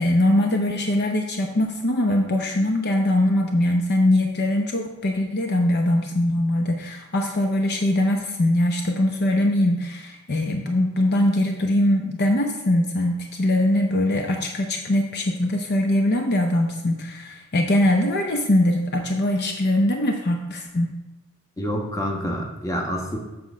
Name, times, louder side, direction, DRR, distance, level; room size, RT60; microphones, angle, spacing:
voice 1, 0.0-21.0, left 1 dB, 50° left, 3 dB, 0.7 m, -22 dB
voice 2, 21.6-23.2, equal, 15° left, 0 dB, 1.2 m, -27 dB
7.8 x 4.4 x 6.1 m, 1.1 s
head